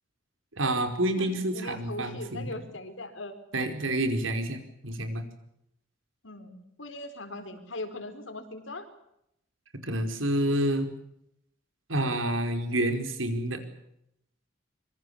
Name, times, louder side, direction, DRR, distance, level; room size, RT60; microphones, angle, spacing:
voice 1, 0.6-2.6 3.5-4.6 4.8-5.2 9.8-10.9 11.9-13.6, right 1 dB, 85° right, 7 dB, 4.9 m, -28 dB
voice 2, 1.2-3.4 6.2-8.9, left 2 dB, 70° left, 9 dB, 4.5 m, -40 dB
26.0 x 23.5 x 7.2 m, 0.79 s
head